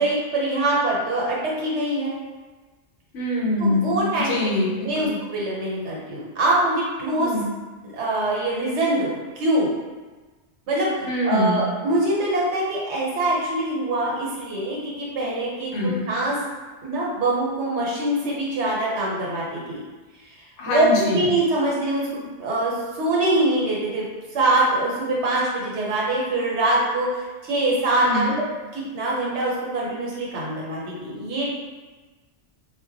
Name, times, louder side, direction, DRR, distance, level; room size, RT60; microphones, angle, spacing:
voice 1, 0.0-2.2 3.6-4.4 4.8-7.3 7.8-9.7 10.7-16.4 16.8-19.8 20.7-24.1 24.3-28.5 28.7-31.5, right 2 dB, 80° right, -4 dB, 1.1 m, -24 dB
voice 2, 3.1-5.1 7.2-7.4 11.0-11.6 15.7-16.1 20.6-21.3 28.0-28.3, left 2 dB, 70° left, -3 dB, 0.9 m, -24 dB
2.2 x 2.1 x 3.8 m, 1.3 s
omnidirectional pair, 1.2 m